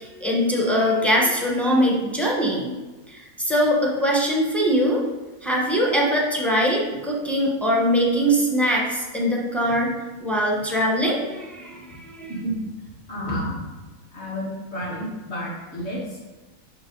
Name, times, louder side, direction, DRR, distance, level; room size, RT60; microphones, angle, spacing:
voice 1, 0.0-2.7 3.1-5.0 5.4-9.9 10.2-12.3, equal, ahead, -2 dB, 1.0 m, -22 dB
voice 2, 13.1-13.5 14.1-16.3, equal, 45° left, -6 dB, 2.4 m, -30 dB
10.5 x 4.0 x 4.0 m, 1.2 s
omnidirectional pair, 1.7 m